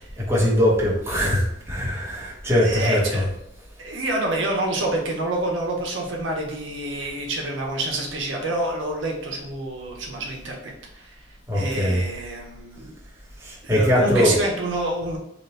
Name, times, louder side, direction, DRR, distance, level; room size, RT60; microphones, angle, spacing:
voice 1, 0.2-3.3 11.5-12.0 13.4-14.3, equal, 15° right, -5 dB, 0.8 m, -21 dB
voice 2, 2.6-3.3 3.8-11.2 11.5-12.9 13.6-15.2, right 2 dB, 80° right, 0 dB, 0.7 m, -27 dB
2.9 x 2.2 x 4.0 m, 0.76 s
head